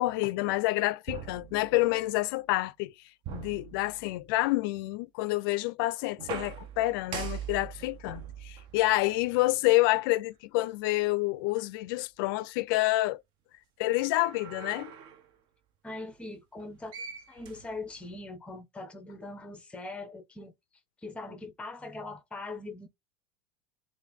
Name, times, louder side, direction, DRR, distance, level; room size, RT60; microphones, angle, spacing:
voice 1, 0.0-2.9 3.3-13.2 13.8-14.9, left 19 dB, 70° left, 0.4 m, -28 dB
sound 1, 1.1-2.2 3.2-4.4 6.2-9.8 10.6-10.7 13.9-15.3 16.6-16.7 16.9-18.2, right 8 dB, 40° right, 0.6 m, -42 dB
voice 2, 15.8-20.5 21.0-22.9, left 2 dB, 10° left, 0.6 m, -41 dB
3.2 x 2.5 x 3.4 m
cardioid pair, 160°, 12 cm